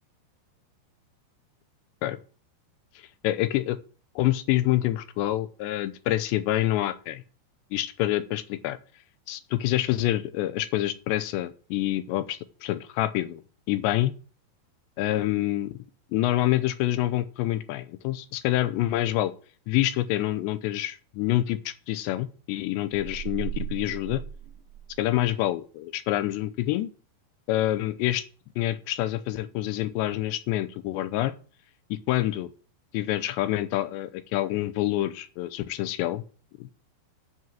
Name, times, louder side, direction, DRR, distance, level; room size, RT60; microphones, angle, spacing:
voice 1, 3.2-3.8 4.2-7.2 7.7-8.8 9.3-13.4 13.7-14.1 15.0-15.8 16.1-19.3 19.7-24.2 25.0-26.9 27.5-28.2 28.6-31.4 31.9-32.5 32.9-36.2 36.6-36.7, left 14 dB, 85° left, 13 dB, 3.0 m, -27 dB
sound 1, 22.9-25.3, right 11 dB, 60° right, 1.4 m, -37 dB
8.4 x 7.8 x 7.5 m, 0.40 s
omnidirectional pair, 5.0 m